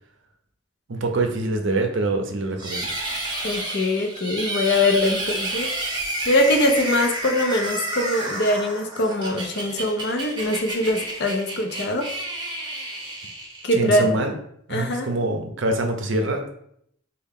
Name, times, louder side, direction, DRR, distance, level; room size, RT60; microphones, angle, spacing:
voice 1, 0.9-2.9 13.7-14.3 14.7-16.5, right 2 dB, 60° right, 5 dB, 0.6 m, -24 dB
sound 1, 2.6-13.9, right 1 dB, 20° right, 0.9 m, -30 dB
voice 2, 3.4-5.7 6.3-12.1 13.6-14.1 14.7-15.1, left 1 dB, 50° left, 4 dB, 0.6 m, -22 dB
4.6 x 2.3 x 3.6 m, 0.71 s
head